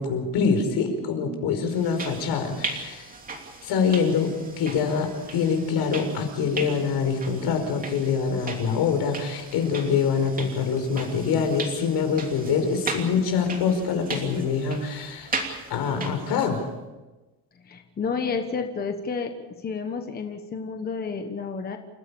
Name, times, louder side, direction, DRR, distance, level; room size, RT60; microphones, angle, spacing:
voice 1, 0.0-3.1 3.6-15.3 15.7-16.6, left 6 dB, 75° left, 6 dB, 5.1 m, -25 dB
sound 1, 1.7-16.6, right 3 dB, 20° right, 3.0 m, -37 dB
voice 2, 17.6-19.3 19.6-21.8, left 5 dB, 25° left, 5 dB, 1.3 m, -30 dB
29.5 x 16.0 x 7.0 m, 1.2 s
cardioid pair, 180°, 40 cm